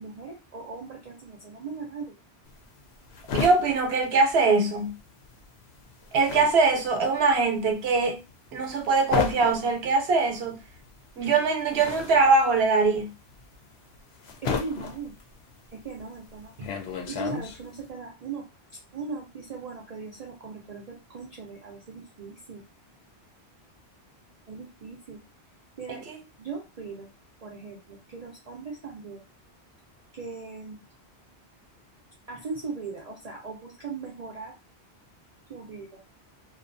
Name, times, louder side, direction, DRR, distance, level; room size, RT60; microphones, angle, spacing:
voice 1, 0.0-2.2 14.4-15.1 15.7-16.6 17.1-18.5 18.9-22.6 24.5-25.2 25.8-26.0 26.4-27.1 27.4-29.2 30.1-30.8 32.3-34.5 35.5-36.0, right 4 dB, 50° right, 0.5 m, -39 dB
sound 1, 2.5-5.0 5.3-17.9, left 6 dB, 75° left, 0.8 m, -34 dB
voice 2, 3.3-5.0 6.1-8.2 8.5-10.6 11.2-13.1 16.6-16.7 26.1-26.2, right 3 dB, 75° right, 0.9 m, -22 dB
2.4 x 2.3 x 2.5 m
omnidirectional pair, 1.1 m